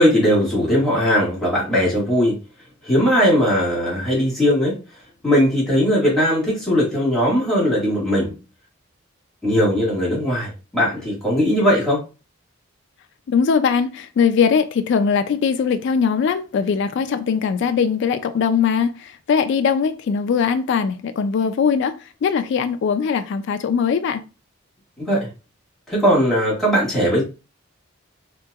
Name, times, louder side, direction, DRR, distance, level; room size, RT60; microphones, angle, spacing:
voice 1, 0.0-2.4 2.8-4.8 5.2-8.3 9.4-12.0 25.0-25.3 25.9-27.2, equal, ahead, 1.7 m, -19 dB
voice 2, 13.3-24.2, left 6 dB, 60° left, 0.3 m, -20 dB
3.4 x 2.9 x 2.3 m
head